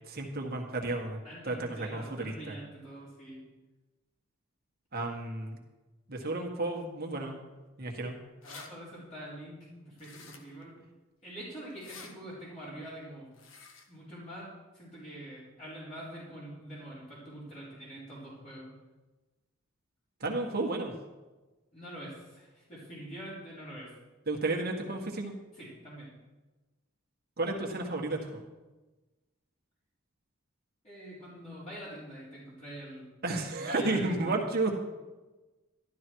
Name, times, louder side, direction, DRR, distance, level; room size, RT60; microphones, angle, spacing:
voice 1, 0.1-1.2 1.4-2.6 4.9-5.6 6.1-7.4 7.8-8.2 20.2-20.9 24.3-25.3 27.4-28.4 33.2-34.7, right 2 dB, 45° right, 1 dB, 1.8 m, -32 dB
voice 2, 1.2-3.4 8.4-10.8 11.2-13.3 13.9-14.5 14.7-18.7 21.7-23.9 25.5-26.1 30.8-33.1 33.5-34.3, right 1 dB, 35° left, -9 dB, 4.4 m, -45 dB
sound 1, 8.4-8.7 10.0-10.6 11.7-12.1 13.3-13.9, left 4 dB, 70° left, 1.4 m, -49 dB
13.0 x 12.0 x 4.7 m, 1.2 s
head